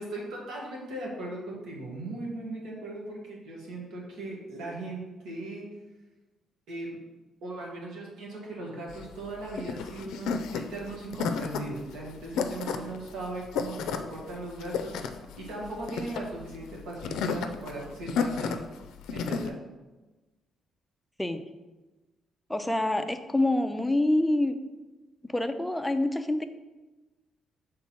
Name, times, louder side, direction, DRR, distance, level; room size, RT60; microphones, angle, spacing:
voice 1, 0.0-5.7 6.7-7.0 7.4-15.0 15.4-18.6 19.1-19.7, right 2 dB, 80° right, -3 dB, 1.7 m, -38 dB
sound 1, 8.9-19.5, left 5 dB, 85° left, 0.4 m, -33 dB
voice 2, 22.5-24.6 25.2-26.5, left 1 dB, 5° left, 8 dB, 0.5 m, -26 dB
6.0 x 3.7 x 4.3 m, 1.1 s
cardioid pair, 90°, 0 cm